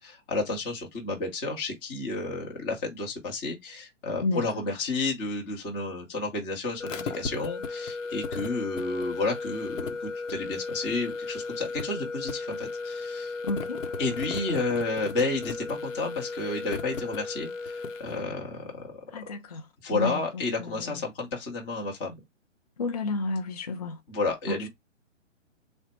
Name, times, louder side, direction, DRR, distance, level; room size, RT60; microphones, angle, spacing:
voice 1, 0.0-13.3 14.0-19.0 19.8-22.1 24.1-24.7, left 3 dB, 15° left, 0.8 m, -31 dB
sound 1, 6.8-18.1, left 4 dB, 85° left, 0.9 m, -35 dB
voice 2, 13.4-13.8 19.1-19.6 19.9-20.2 22.8-24.0 24.5-24.6, left 3 dB, 35° left, 0.4 m, -30 dB
3.9 x 2.1 x 4.3 m
hypercardioid pair, 155°, 37 cm